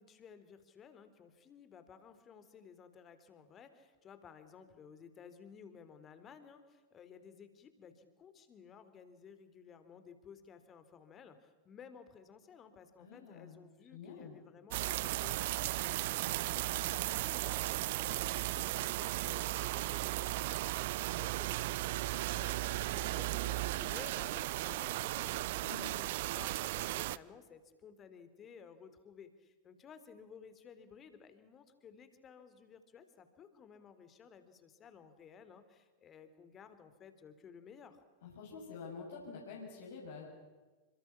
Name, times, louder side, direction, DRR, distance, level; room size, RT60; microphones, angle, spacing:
voice 1, 0.0-25.8 26.3-38.0, left 7 dB, 25° left, 11 dB, 3.7 m, -56 dB
voice 2, 13.0-13.6 13.9-14.3 16.8-17.2 25.6-26.0 38.2-40.3, left 5 dB, 60° left, -3 dB, 7.4 m, -48 dB
sound 1, 14.7-27.2, right 17 dB, 50° right, 0.8 m, -36 dB
Wind instrument woodwind instrument, 21.4-25.7, right 3 dB, 75° right, 3.6 m, -60 dB
29.5 x 26.5 x 7.3 m, 1.2 s
figure-of-eight pair, 90°, 0 cm